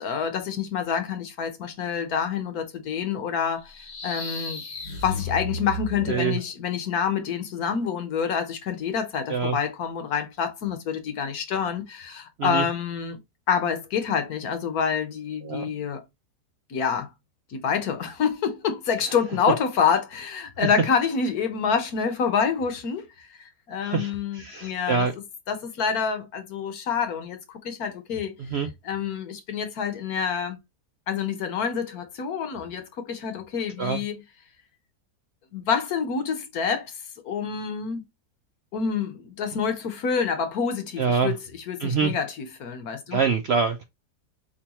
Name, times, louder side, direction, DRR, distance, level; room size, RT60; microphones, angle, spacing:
voice 1, 0.0-4.6 5.0-13.2 13.5-16.0 16.7-17.1 17.5-23.3 23.7-25.1 25.5-28.3 28.8-30.6 31.1-34.2 35.5-37.0 37.2-38.0 38.7-43.2, left 6 dB, 65° left, 1.4 m, -27 dB
sound 1, 3.6-6.5, left 2 dB, 35° left, 0.7 m, -34 dB
voice 2, 6.1-6.4 9.3-9.6 12.4-12.7 15.4-15.7 20.6-20.7 23.8-25.1 28.4-28.7 33.8-34.0 41.0-41.3 41.8-42.1 43.1-43.8, right 5 dB, 75° right, 0.5 m, -25 dB
4.4 x 3.9 x 2.9 m
omnidirectional pair, 1.8 m